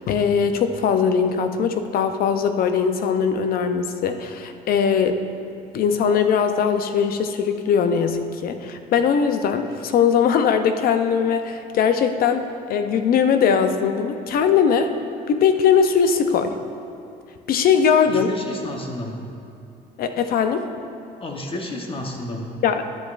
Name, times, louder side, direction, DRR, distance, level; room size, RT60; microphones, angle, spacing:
voice 1, 0.0-5.2 5.7-14.9 15.3-16.5 17.5-18.3 20.0-20.6 22.6-23.0, left 7 dB, 60° left, 8 dB, 0.6 m, -20 dB
voice 2, 18.1-19.2 21.2-22.5, left 1 dB, 30° left, 1 dB, 0.9 m, -31 dB
12.5 x 7.5 x 2.5 m, 2.6 s
cardioid pair, 110°, 17 cm